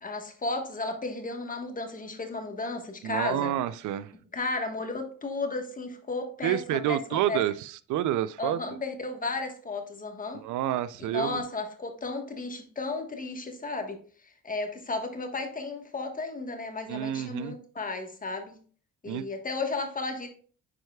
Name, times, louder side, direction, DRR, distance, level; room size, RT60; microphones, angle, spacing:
voice 1, 0.0-3.5 4.3-7.4 8.4-10.4 11.0-18.6 19.0-20.3, left 3 dB, 25° left, 5 dB, 1.3 m, -34 dB
voice 2, 3.0-4.1 6.4-8.6 10.4-11.4 16.9-17.6 19.1-19.3, right 12 dB, 75° right, 16 dB, 0.5 m, -29 dB
8.9 x 4.7 x 2.3 m, 0.44 s
cardioid pair, 90°, 30 cm